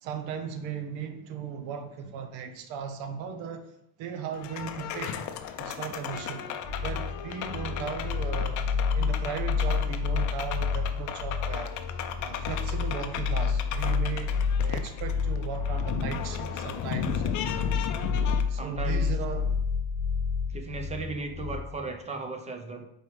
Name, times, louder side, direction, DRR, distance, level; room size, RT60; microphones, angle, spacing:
voice 1, 0.0-3.6 4.0-5.2 5.6-6.5 6.8-8.6 8.9-11.7 12.2-17.4 18.5-19.6, right 7 dB, 75° right, 7 dB, 0.9 m, -36 dB
sound 1, 4.3-18.4, left 9 dB, 40° left, 0.5 m, -36 dB
sound 2, 6.6-21.6, left 5 dB, 10° left, 1.9 m, -29 dB
voice 2, 18.1-19.1 20.5-22.9, right 3 dB, 15° right, 5 dB, 0.6 m, -37 dB
4.9 x 4.6 x 4.6 m, 0.77 s
cardioid pair, 140°, 47 cm